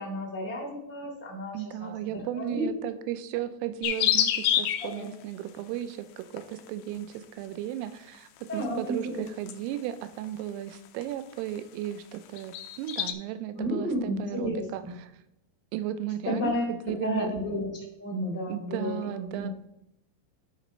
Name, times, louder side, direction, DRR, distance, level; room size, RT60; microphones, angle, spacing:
voice 1, 0.0-1.9 2.3-2.7 4.8-5.0 8.5-9.2 13.6-14.9 16.2-16.7 17.0-17.7 18.0-19.0 19.2-19.5, equal, 5° right, -3 dB, 0.9 m, -32 dB
voice 2, 1.5-15.1 15.7-17.3 18.5-19.5, right 12 dB, 85° right, 11 dB, 3.2 m, -35 dB
sound 1, 3.8-4.9 6.4-6.7 8.2-8.6 9.3-9.5 10.2-10.3 11.0-11.1 11.3-11.6 11.9-13.1, left 11 dB, 85° left, 3.2 m, -26 dB
12.0 x 5.1 x 3.1 m, 0.83 s
omnidirectional pair, 5.8 m